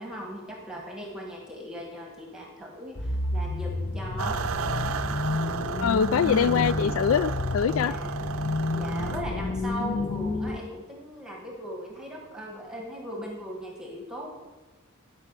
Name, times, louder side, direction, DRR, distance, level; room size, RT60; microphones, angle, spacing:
voice 1, 0.0-4.5 7.8-8.1 8.7-14.3, equal, 5° right, 0 dB, 1.4 m, -38 dB
sound 1, 3.0-10.6, left 2 dB, 35° left, 0.7 m, -30 dB
sound 2, 4.2-9.2, right 7 dB, 75° right, 0.6 m, -34 dB
voice 2, 5.8-7.9 9.8-10.2, left 7 dB, 75° left, 16 dB, 0.4 m, -24 dB
12.0 x 5.5 x 7.6 m, 1.2 s
head